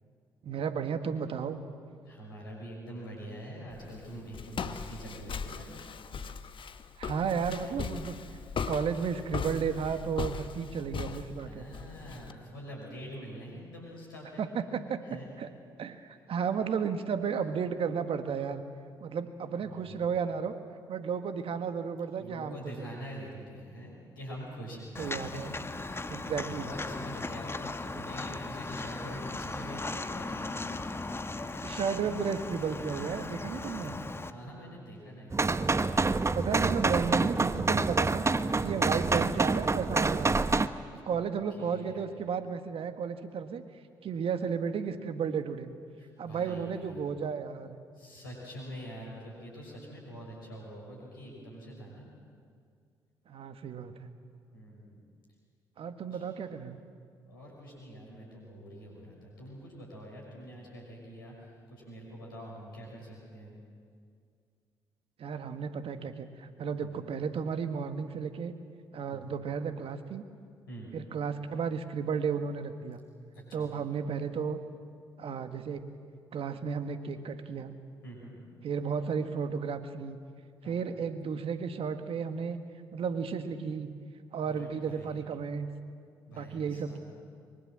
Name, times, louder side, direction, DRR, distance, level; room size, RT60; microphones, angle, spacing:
voice 1, 0.4-1.6 7.0-8.2 8.7-11.7 14.4-15.0 15.4-15.5 15.8-18.6 19.0-20.6 20.9-22.9 25.0-25.5 26.1-26.7 31.6-34.0 36.3-38.3 38.6-40.5 41.1-43.6 44.0-45.7 46.2-47.8 53.3-54.1 55.8-56.8 65.2-68.5 68.9-70.2 70.9-73.0 73.5-74.6 75.2-75.8 76.3-77.7 78.6-80.2 80.6-82.6 82.9-83.9 84.3-85.7 86.3-87.0, right 6 dB, 55° right, 9 dB, 1.7 m, -33 dB
voice 2, 2.1-5.8 7.5-7.8 11.5-14.4 15.1-15.3 19.6-20.0 22.2-24.9 25.3-25.4 25.8-30.6 34.3-36.1 38.6-38.8 41.1-41.3 41.6-42.0 46.0-47.0 47.9-52.1 54.5-55.0 56.1-56.2 57.3-61.3 61.7-63.5 66.8-67.0 69.1-69.3 70.7-70.9 73.3-73.7 78.0-78.4 80.6-80.8 84.4-85.2 86.3-87.0, equal, 90° left, -3 dB, 6.1 m, -45 dB
Walk footsteps, 3.7-12.3, left 6 dB, 50° left, 1.3 m, -38 dB
Walk footsteps 2, 24.9-34.3, left 2 dB, 20° left, 1.4 m, -37 dB
sound 1, 35.3-40.7, right 3 dB, 25° right, 1.0 m, -27 dB
24.5 x 23.0 x 7.6 m, 2.2 s
hypercardioid pair, 40°, 11 cm